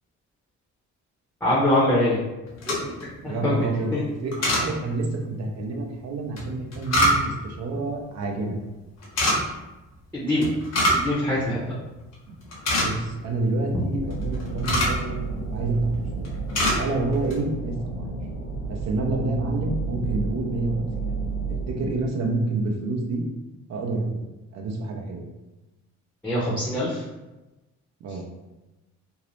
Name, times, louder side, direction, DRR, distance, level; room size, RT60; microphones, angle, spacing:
voice 1, 1.4-2.2 2.6-4.0 10.1-10.5 10.9-11.8 26.2-27.0, left 1 dB, 5° left, -7 dB, 0.6 m, -24 dB
sound 1, 2.5-3.1 4.3-4.7 6.4-7.5 9.0-9.4 10.4-11.1 11.4-11.5 12.0-12.1 12.4-13.2 14.1-15.0 15.7-16.0 16.2-16.8 17.1-17.4, equal, 60° left, 0.9 m, -23 dB
voice 2, 3.2-3.9 4.2-8.6 12.3-12.4 12.8-15.2 15.5-16.3 16.8-18.0 18.7-21.1 21.7-23.2 23.7-24.3 24.5-25.3 28.0-28.3, right 2 dB, 60° right, 2 dB, 0.6 m, -28 dB
sound 2, 13.9-21.9, right 3 dB, 90° left, 0.7 m, -31 dB
2.6 x 2.0 x 3.0 m, 1.1 s
cardioid pair, 90°, 30 cm